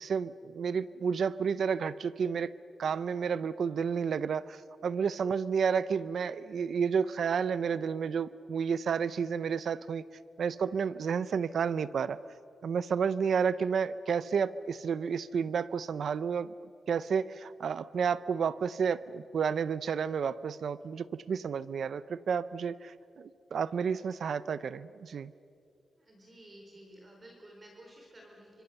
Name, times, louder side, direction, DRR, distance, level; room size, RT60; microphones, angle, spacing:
voice 1, 0.0-2.5 2.8-10.0 10.4-12.2 12.6-16.5 16.9-25.3, right 6 dB, 60° right, 16 dB, 0.5 m, -31 dB
voice 2, 26.0-28.6, right 1 dB, 25° right, 0 dB, 4.5 m, -53 dB
30.0 x 25.0 x 7.0 m, 2.4 s
wide cardioid pair, 170°, 0 cm